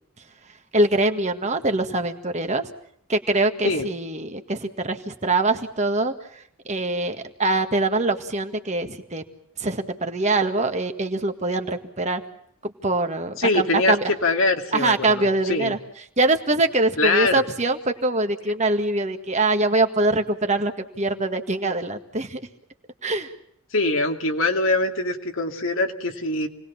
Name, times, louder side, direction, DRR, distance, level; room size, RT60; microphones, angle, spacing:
voice 1, 0.7-2.7 3.1-6.1 6.7-9.2 9.6-12.2 12.6-14.0 14.7-15.8 16.2-22.4 23.0-23.3, right 2 dB, 35° right, 6 dB, 1.8 m, -23 dB
voice 2, 13.4-15.7 17.0-17.3 23.7-26.5, left 2 dB, 65° left, 4 dB, 2.6 m, -23 dB
28.5 x 20.0 x 7.3 m, 0.70 s
head